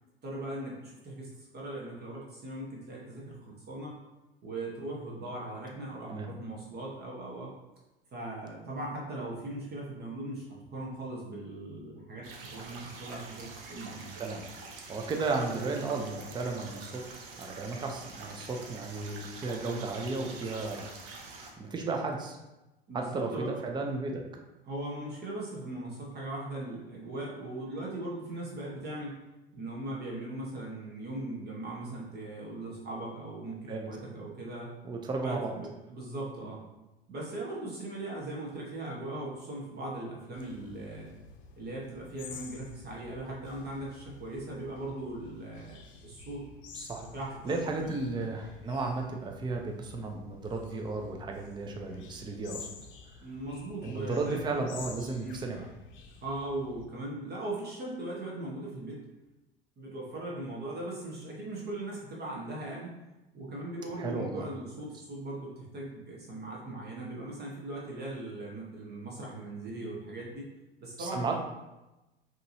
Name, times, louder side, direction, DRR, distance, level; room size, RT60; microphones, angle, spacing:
voice 1, 0.2-4.0 4.4-7.5 8.1-10.5 10.7-14.1 22.9-23.5 24.7-29.1 29.5-34.7 35.2-36.6 37.1-41.1 41.6-46.4 47.0-47.6 53.2-54.6 55.2-55.4 56.2-59.0 59.8-62.9 63.3-70.5 70.8-71.4, right 2 dB, 35° right, -3 dB, 1.2 m, -39 dB
sound 1, 12.2-21.5, right 3 dB, 50° right, 0.9 m, -46 dB
voice 2, 14.9-20.9 21.6-22.4 22.9-24.2 33.7-33.9 34.8-35.6 46.7-47.1 47.4-52.7 53.8-55.7 64.0-64.4 71.0-71.3, right 3 dB, 15° right, 2 dB, 0.6 m, -34 dB
sound 2, 40.3-56.8, left 5 dB, 40° left, 0.7 m, -50 dB
5.1 x 3.0 x 2.7 m, 1.0 s
figure-of-eight pair, 75°, 29 cm